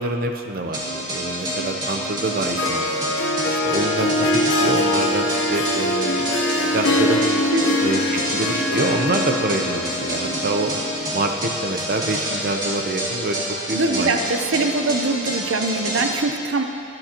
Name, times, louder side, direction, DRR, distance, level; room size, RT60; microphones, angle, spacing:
voice 1, 0.0-3.0 3.5-7.2 7.8-10.7 11.1-14.1, right 2 dB, 50° right, 4 dB, 0.7 m, -26 dB
sound 1, 0.7-16.1, equal, 20° right, 2.0 m, -28 dB
Harp, 2.3-11.3, left 1 dB, 80° left, 1.1 m, -23 dB
voice 2, 13.7-16.6, right 3 dB, 90° right, 6 dB, 0.7 m, -22 dB
24.0 x 10.5 x 3.0 m, 2.9 s
head